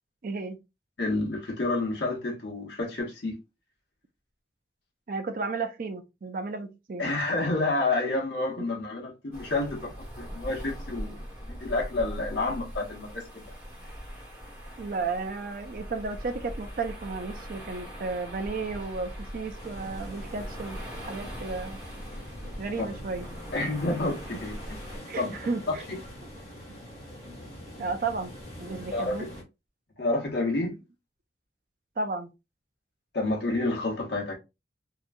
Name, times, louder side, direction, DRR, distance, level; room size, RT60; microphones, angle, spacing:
voice 1, 0.2-0.6 5.1-7.0 14.8-20.8 21.1-21.8 22.6-23.3 25.1-25.8 27.8-28.3 28.6-29.3 32.0-32.3, right 4 dB, 50° right, 0.4 m, -33 dB
voice 2, 1.0-3.4 7.0-11.2 11.5-13.5 22.8-22.9 23.5-24.8 25.2-25.3 25.9-26.0 28.9-29.1 30.0-30.8 33.1-34.3, left 2 dB, 70° left, 1.0 m, -29 dB
sound 1, 9.3-25.0, equal, 10° right, 1.1 m, -41 dB
sound 2, 19.6-29.4, equal, 35° left, 1.4 m, -44 dB
2.9 x 2.3 x 2.5 m
head